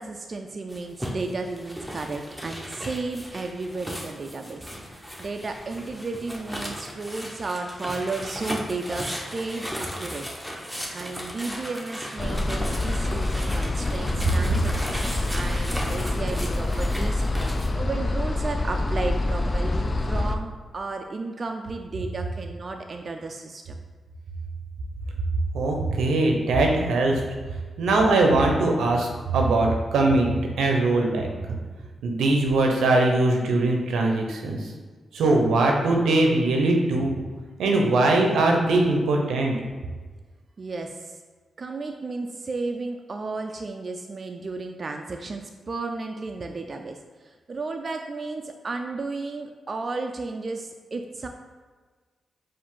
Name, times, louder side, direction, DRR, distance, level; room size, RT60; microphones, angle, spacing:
voice 1, 0.0-10.3 10.9-17.2 17.7-23.8 40.6-41.2 41.6-51.3, right 3 dB, 50° right, 4 dB, 0.3 m, -33 dB
sound 1, 0.7-17.7, equal, ahead, 0.8 m, -36 dB
sound 2, 12.2-20.4, left 2 dB, 40° left, 0.4 m, -26 dB
voice 2, 25.5-27.2 27.8-31.3 32.0-34.7 35.1-37.2 37.6-39.5, right 2 dB, 90° right, 1 dB, 0.6 m, -21 dB
4.6 x 2.6 x 3.7 m, 1.4 s
cardioid pair, 60°, 0 cm